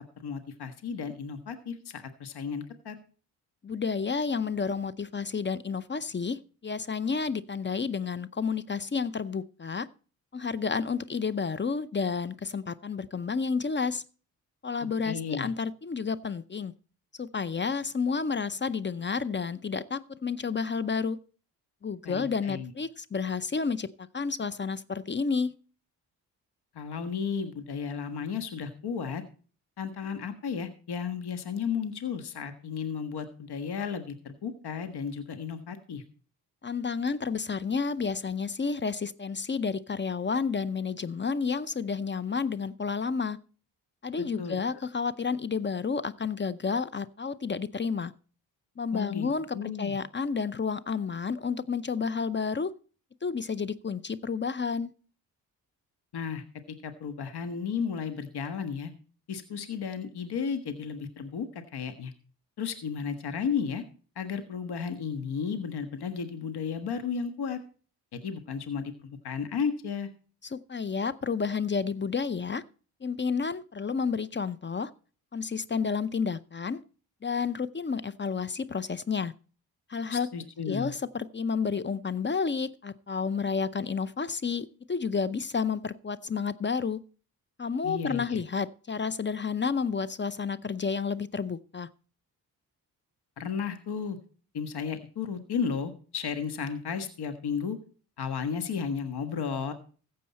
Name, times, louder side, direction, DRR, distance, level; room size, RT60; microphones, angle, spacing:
voice 1, 0.2-3.0 15.0-15.5 22.0-22.7 26.7-29.2 29.8-36.0 44.4-44.6 48.9-49.3 49.5-49.9 56.1-58.9 59.3-62.1 62.6-63.8 64.1-67.6 68.1-70.1 80.1-80.9 87.8-88.4 93.4-94.2 94.5-97.8 98.2-99.7, left 6 dB, 60° left, 1.5 m, -33 dB
voice 2, 3.6-9.9 10.3-14.0 14.6-16.7 17.2-21.2 21.8-25.5 36.6-43.4 44.0-48.1 48.8-52.7 53.2-54.9 70.4-72.6 73.0-74.9 75.3-76.8 77.2-79.3 79.9-80.3 80.7-87.0 87.6-91.9, left 5 dB, 25° left, 0.6 m, -30 dB
14.5 x 7.7 x 4.2 m
supercardioid pair, 45°, 44 cm